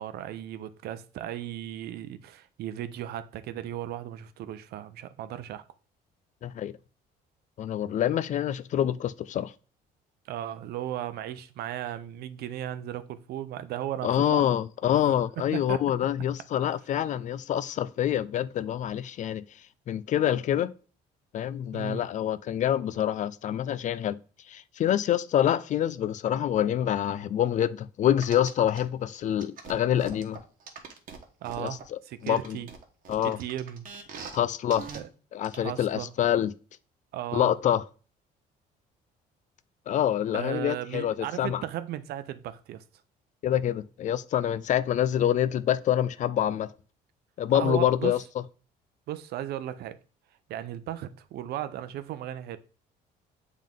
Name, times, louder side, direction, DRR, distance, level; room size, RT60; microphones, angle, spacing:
voice 1, 0.0-5.6 10.3-14.4 14.9-15.0 15.4-15.8 21.7-22.1 31.4-32.7 33.2-33.9 34.9-35.1 35.5-36.1 37.1-37.6 40.3-42.8 47.5-48.1 49.1-50.0 50.5-52.6, right 12 dB, 70° right, 0.6 m, -36 dB
voice 2, 6.4-6.7 7.6-9.5 14.0-19.4 19.9-20.7 21.3-24.2 24.5-30.4 31.6-32.6 33.1-33.4 34.3-34.9 35.3-36.5 37.3-37.8 39.9-41.6 43.4-46.7 47.4-48.2, left 10 dB, 45° left, 0.4 m, -26 dB
sound 1, 28.2-28.8 29.4-31.8 32.3-34.4 34.7-35.0 35.4-35.5, right 6 dB, 55° right, 1.2 m, -42 dB
7.4 x 3.7 x 3.6 m
cardioid pair, 110°, 17 cm